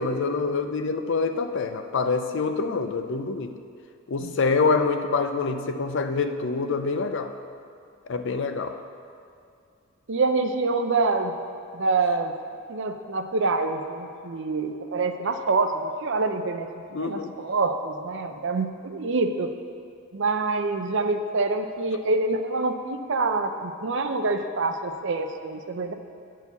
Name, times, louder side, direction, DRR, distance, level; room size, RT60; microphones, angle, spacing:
voice 1, 0.0-3.6 4.1-7.3 8.1-8.8 16.9-17.3, left 4 dB, 60° left, 8 dB, 0.5 m, -26 dB
voice 2, 10.1-11.3 11.7-12.3 12.7-19.5 20.1-25.9, right 3 dB, 60° right, 7 dB, 0.5 m, -26 dB
9.7 x 4.6 x 7.0 m, 2.4 s
head